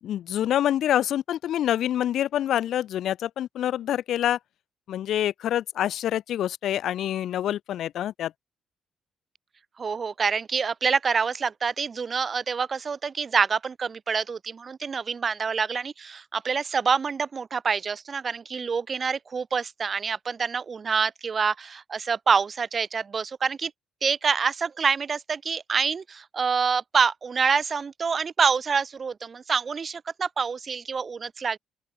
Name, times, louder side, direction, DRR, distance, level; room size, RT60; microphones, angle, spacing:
voice 1, 0.0-4.4 4.9-8.3, left 11 dB, 75° left, 0.4 m, -26 dB
voice 2, 9.8-23.7 24.0-31.6, right 5 dB, 40° right, 0.6 m, -26 dB
open air
cardioid pair, 90°, 0 cm